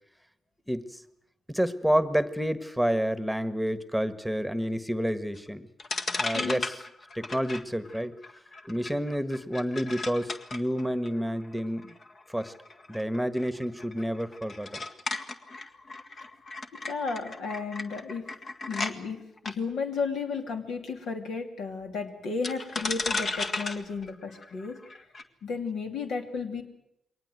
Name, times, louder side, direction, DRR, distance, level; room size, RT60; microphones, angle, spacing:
voice 1, 0.7-1.0 1.5-5.7 6.2-6.8 7.1-8.1 8.6-11.9 12.3-12.5 12.9-14.8, equal, ahead, 13 dB, 1.5 m, -29 dB
sound 1, 5.3-5.4 5.8-18.9 19.4-19.5 22.4-25.2, left 3 dB, 50° left, 1.8 m, -36 dB
voice 2, 16.9-18.2 18.7-24.8 25.4-26.6, left 4 dB, 75° left, 4 dB, 2.8 m, -33 dB
22.5 x 18.5 x 8.0 m, 0.81 s
supercardioid pair, 55°, 0 cm